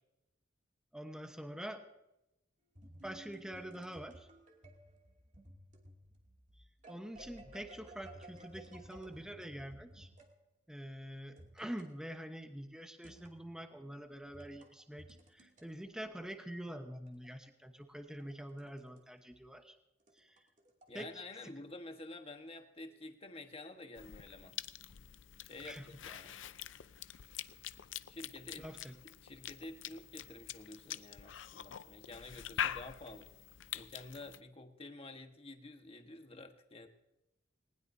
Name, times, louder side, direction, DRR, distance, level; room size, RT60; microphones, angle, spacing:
voice 1, 0.9-1.8 3.0-4.3 6.6-10.1 10.7-19.8 20.1-20.4 20.9-21.1 21.4-21.5 25.6-25.9 28.6-28.9, equal, 5° right, 5 dB, 1.0 m, -46 dB
sound 1, 2.7-10.3 11.4-11.9 13.0-13.5 14.3-15.6 17.1-19.0 19.3-19.4 20.0-21.0, right 1 dB, 40° right, 2.6 m, -56 dB
voice 2, 20.9-24.5 25.4-26.4 28.1-28.7 29.2-33.3 33.7-36.9, left 2 dB, 30° left, 5 dB, 1.4 m, -50 dB
Cough / Chewing mastication, 24.0-34.4, left 10 dB, 75° left, 0.6 m, -45 dB
19.5 x 19.5 x 2.7 m, 0.91 s
head